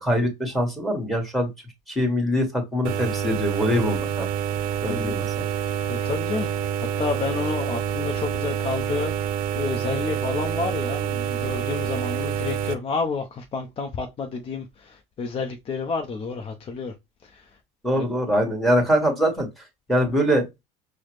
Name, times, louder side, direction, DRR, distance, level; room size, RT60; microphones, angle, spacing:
voice 1, 0.0-1.5 1.9-4.3 4.8-5.4 17.8-20.5, equal, ahead, 1.5 m, -23 dB
sound 1, 2.8-12.7, right 9 dB, 60° right, 0.6 m, -27 dB
voice 2, 4.9-5.2 5.9-16.9 17.2-17.5 17.9-18.1, left 4 dB, 35° left, 0.6 m, -30 dB
4.7 x 2.1 x 3.1 m
supercardioid pair, 110°, 17 cm